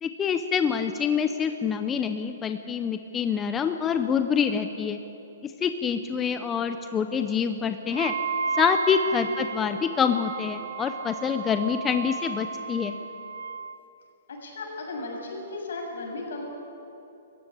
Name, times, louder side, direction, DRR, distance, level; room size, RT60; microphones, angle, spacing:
voice 1, 0.0-5.0 5.4-8.1 8.5-13.0, left 7 dB, 10° left, 8 dB, 0.5 m, -26 dB
Wind instrument woodwind instrument, 7.9-13.8, right 5 dB, 80° right, 0.9 m, -33 dB
voice 2, 14.3-16.4, left 2 dB, 75° left, 0 dB, 7.4 m, -36 dB
21.5 x 15.5 x 10.0 m, 2.9 s
hypercardioid pair, 180°, 0 cm